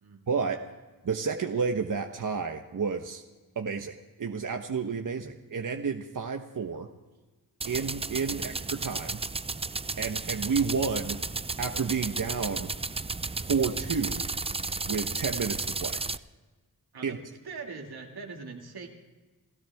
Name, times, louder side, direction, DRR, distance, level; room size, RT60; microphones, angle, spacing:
voice 1, 0.3-0.6 1.0-3.2 3.6-6.9 7.7-9.2 10.0-11.2 11.6-12.7 13.5-14.3 14.9-16.0 17.0-17.2, right 5 dB, 55° right, 4 dB, 1.2 m, -30 dB
sound 1, 7.6-16.2, right 3 dB, 15° right, 0.5 m, -33 dB
voice 2, 17.4-18.9, right 4 dB, 80° right, 2 dB, 2.3 m, -41 dB
30.0 x 13.5 x 3.5 m, 1.2 s
cardioid pair, 55°, 37 cm